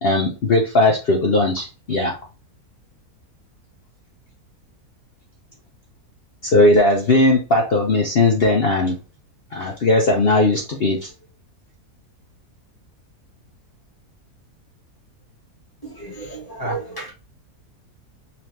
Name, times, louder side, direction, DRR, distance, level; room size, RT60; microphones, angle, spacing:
voice 1, 0.0-2.1 6.4-9.0 9.5-11.1, left 2 dB, 50° left, 0.8 m, -18 dB
voice 2, 16.0-17.1, right 2 dB, 15° left, 1.6 m, -31 dB
4.2 x 2.8 x 3.1 m
omnidirectional pair, 1.7 m